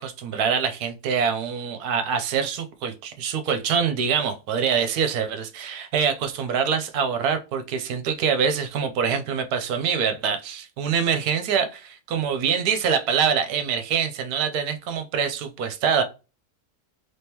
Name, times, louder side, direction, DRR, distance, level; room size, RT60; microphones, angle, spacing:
voice 1, 0.0-16.0, right 7 dB, 75° right, 1.2 m, -25 dB
3.6 x 3.2 x 2.9 m
omnidirectional pair, 1.7 m